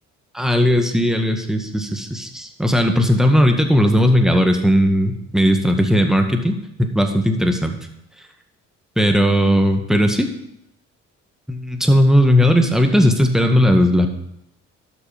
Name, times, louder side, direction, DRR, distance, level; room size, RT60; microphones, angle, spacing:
voice 1, 0.3-7.8 9.0-10.3 11.5-14.1, equal, ahead, 4 dB, 1.8 m, -17 dB
12.0 x 6.2 x 5.3 m, 0.79 s
hypercardioid pair, 50°, 38 cm